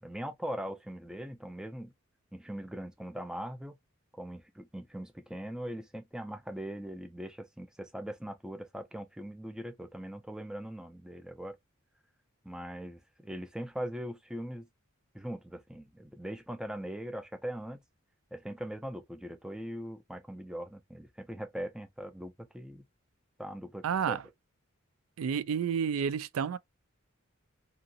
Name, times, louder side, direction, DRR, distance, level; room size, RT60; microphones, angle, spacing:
voice 1, 0.0-1.9 2.3-3.8 4.2-11.6 12.4-14.7 15.1-17.8 18.3-22.8 23.4-24.2, equal, 5° right, 0.4 m, -41 dB
voice 2, 23.8-24.2 25.2-26.6, right 7 dB, 85° right, 0.3 m, -30 dB
2.9 x 2.4 x 2.7 m
head